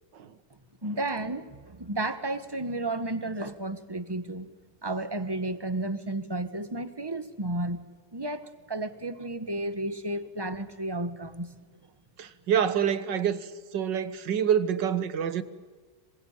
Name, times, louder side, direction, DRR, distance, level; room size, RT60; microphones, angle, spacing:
voice 1, 0.8-4.5 4.8-7.9 8.1-11.5, right 2 dB, 15° right, 1.3 m, -32 dB
voice 2, 12.2-15.4, right 8 dB, 75° right, 2.0 m, -27 dB
27.0 x 22.5 x 9.2 m
omnidirectional pair, 2.0 m